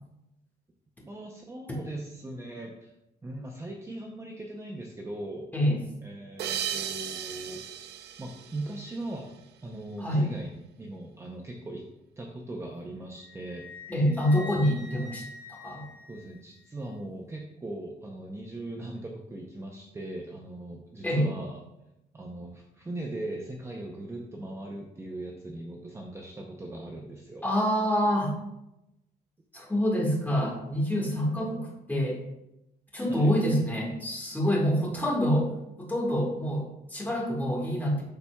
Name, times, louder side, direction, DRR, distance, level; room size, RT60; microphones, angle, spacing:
voice 1, 1.0-2.9 3.2-5.5 6.0-7.6 8.2-9.3 9.6-11.8 12.2-13.6 16.1-21.6 22.1-27.4 33.1-33.3, right 1 dB, 15° right, 0 dB, 0.6 m, -39 dB
sound 1, 6.4-9.5, right 9 dB, 80° right, 0.5 m, -36 dB
Wind instrument woodwind instrument, 13.2-16.7, left 3 dB, 85° left, 1.0 m, -46 dB
voice 2, 13.9-15.2 15.5-15.8 21.0-21.3 27.4-28.3 29.5-32.2 32.9-35.5 35.8-38.0, equal, 10° left, -3 dB, 1.7 m, -26 dB
11.5 x 4.2 x 2.3 m, 0.91 s
cardioid pair, 135°, 17 cm